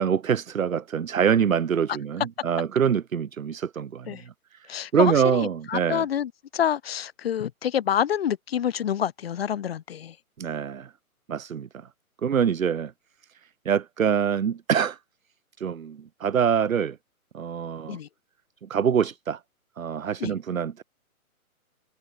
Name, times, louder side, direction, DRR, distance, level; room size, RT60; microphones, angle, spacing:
voice 1, 0.0-4.2 4.5-4.7 4.9-6.1 10.4-10.9 11.3-11.7 12.2-12.9 13.7-15.0 15.6-17.0 17.3-18.0 18.6-19.4 19.8-20.8, right 7 dB, 65° right, 2.2 m, -25 dB
voice 2, 4.7-10.1 17.9-18.1 20.2-20.3, left 9 dB, 45° left, 1.8 m, -27 dB
hypercardioid pair, 160°, 43 cm